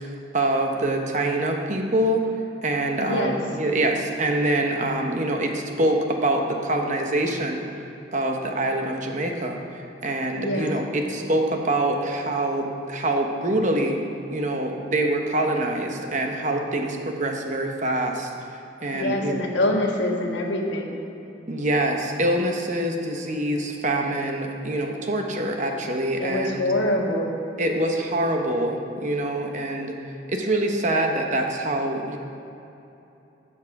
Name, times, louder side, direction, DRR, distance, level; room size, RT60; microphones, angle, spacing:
voice 1, 0.0-2.2 2.6-7.7 8.1-14.0 14.3-18.3 18.8-19.4 21.5-26.6 27.6-29.9 30.3-32.2, right 1 dB, 40° right, 3 dB, 0.9 m, -25 dB
voice 2, 3.0-3.4 10.3-10.8 18.9-21.0 26.2-27.4, left 1 dB, 70° left, 0 dB, 1.5 m, -25 dB
13.0 x 7.4 x 4.8 m, 2.9 s
head